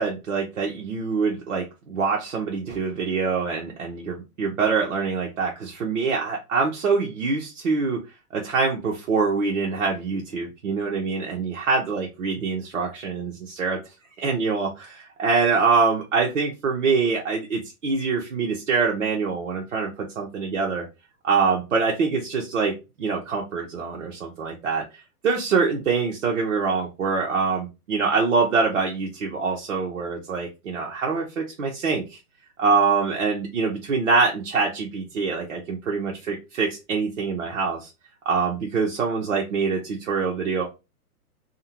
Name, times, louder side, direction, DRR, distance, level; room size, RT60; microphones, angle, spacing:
voice 1, 0.0-8.0 8.3-13.8 14.2-20.9 21.2-22.7 23.0-24.8 25.2-32.2 32.6-37.9 38.3-40.7, right 4 dB, 55° right, -1 dB, 0.7 m, -24 dB
2.6 x 2.1 x 2.8 m, 0.27 s
hypercardioid pair, 170°, 47 cm